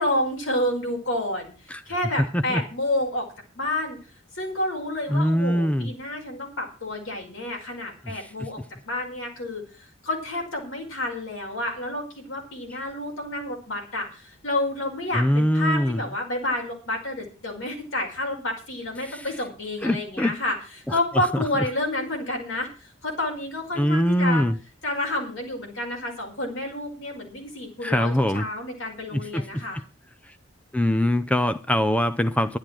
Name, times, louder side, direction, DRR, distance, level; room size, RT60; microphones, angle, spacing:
voice 1, 0.0-3.3 3.6-4.0 4.3-8.6 8.9-20.6 20.9-24.4 24.8-29.8, left 1 dB, 75° left, 5.3 m, -29 dB
voice 2, 5.1-5.9 8.0-8.3 15.1-16.0 19.0-19.3 19.8-20.3 20.9-21.3 23.8-24.6 27.8-28.5 29.1-29.8 30.3-30.4 30.7-32.6, equal, 5° left, 0.6 m, -23 dB
12.0 x 10.5 x 6.1 m
head